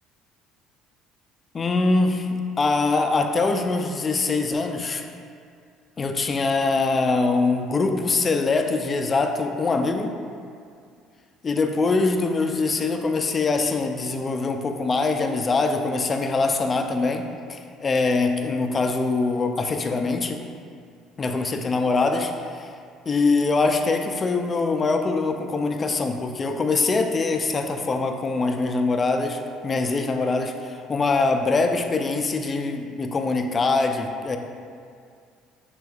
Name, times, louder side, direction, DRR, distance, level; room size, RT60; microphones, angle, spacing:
voice 1, 1.5-5.0 6.0-10.1 11.4-20.4 21.2-22.7 23.1-34.4, left 3 dB, 35° left, 6 dB, 0.4 m, -23 dB
6.1 x 3.4 x 2.3 m, 2.3 s
supercardioid pair, 80°, 0 cm